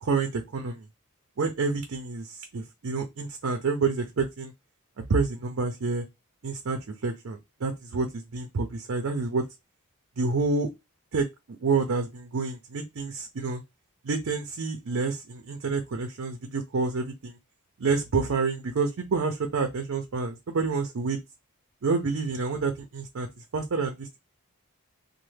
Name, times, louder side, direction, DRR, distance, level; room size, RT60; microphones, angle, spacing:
voice 1, 0.0-0.8 1.4-4.5 5.1-6.0 6.4-9.4 10.2-10.7 11.1-11.3 11.6-13.6 14.0-17.4 17.8-21.2 21.8-23.3 23.5-24.2, right 4 dB, 65° right, 0.5 m, -28 dB
3.1 x 2.1 x 3.2 m
head